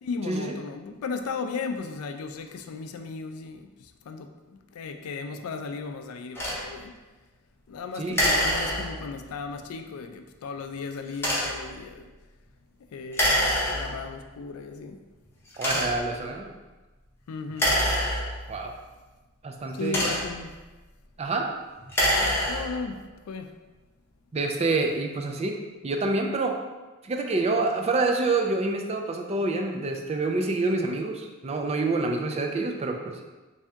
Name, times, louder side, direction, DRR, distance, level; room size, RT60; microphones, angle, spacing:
voice 1, 0.0-7.0 7.7-12.1 12.9-15.0 17.3-17.9 19.7-20.6 22.2-23.6, left 4 dB, 90° left, 0.4 m, -36 dB
sound 1, 6.3-6.6 8.1-9.2 11.1-11.7 13.1-14.1 14.8-14.9 15.5-16.2 17.5-18.6 19.6-20.5 21.8-22.9, equal, 10° left, 0.7 m, -26 dB
voice 2, 15.6-16.5 18.5-18.7 19.4-20.1 21.2-21.5 24.3-25.6 25.8-26.6 27.0-33.2, right 3 dB, 30° right, 0.3 m, -27 dB
3.4 x 2.7 x 3.4 m
head